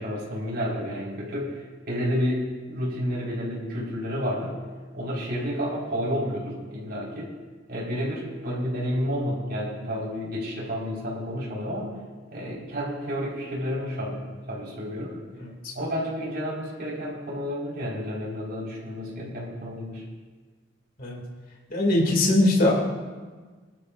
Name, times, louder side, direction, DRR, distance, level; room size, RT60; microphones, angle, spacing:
voice 1, 0.0-4.5 4.9-7.3 7.7-11.9 12.3-14.2 14.5-15.1 15.7-20.0, equal, 60° right, -5 dB, 4.7 m, -30 dB
voice 2, 15.4-15.7 21.0-21.2 21.7-22.7, left 1 dB, 50° left, -3 dB, 2.6 m, -21 dB
21.5 x 12.5 x 2.6 m, 1.4 s
head